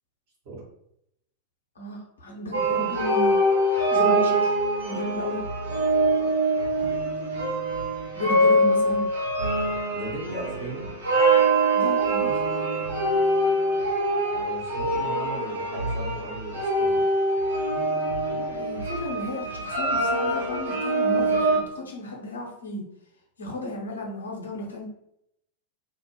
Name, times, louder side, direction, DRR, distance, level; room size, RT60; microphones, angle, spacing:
voice 1, 1.8-3.4 3.9-4.5 4.8-5.4 8.1-9.0 11.7-12.3 18.3-22.8 23.4-24.8, left 2 dB, 75° left, -1 dB, 0.8 m, -33 dB
sound 1, 2.5-21.6, right 1 dB, 70° right, 0.7 m, -24 dB
voice 2, 9.9-10.9 14.3-17.0, right 2 dB, 50° right, -3 dB, 1.0 m, -37 dB
2.4 x 2.1 x 3.0 m, 0.75 s
figure-of-eight pair, 90°, 0 cm